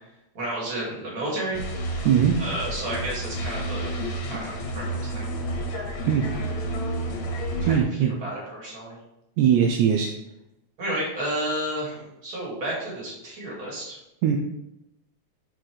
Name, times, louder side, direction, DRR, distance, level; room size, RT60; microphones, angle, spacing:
voice 1, 0.3-1.6 2.4-3.9 4.3-5.3 7.6-9.0 10.8-14.0, right 1 dB, 30° right, -6 dB, 2.7 m, -31 dB
sound 1, 1.5-7.8, right 1 dB, 70° left, 2.2 m, -30 dB
voice 2, 2.1-2.4 6.1-6.3 7.7-8.1 9.4-10.1 14.2-14.4, right 8 dB, 80° right, 3 dB, 1.9 m, -20 dB
5.8 x 4.6 x 4.7 m, 0.87 s
omnidirectional pair, 3.4 m